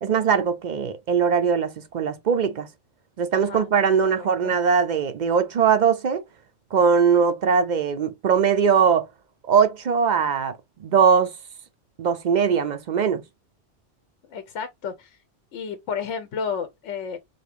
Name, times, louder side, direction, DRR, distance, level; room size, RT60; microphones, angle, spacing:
voice 1, 0.0-2.7 3.2-6.2 6.7-9.1 9.5-11.3 12.0-13.2, right 6 dB, 55° right, 0.5 m, -21 dB
voice 2, 3.3-3.7 4.2-4.5 14.3-15.1 15.5-17.2, left 6 dB, 75° left, 1.0 m, -32 dB
4.1 x 2.8 x 3.3 m
omnidirectional pair, 1.3 m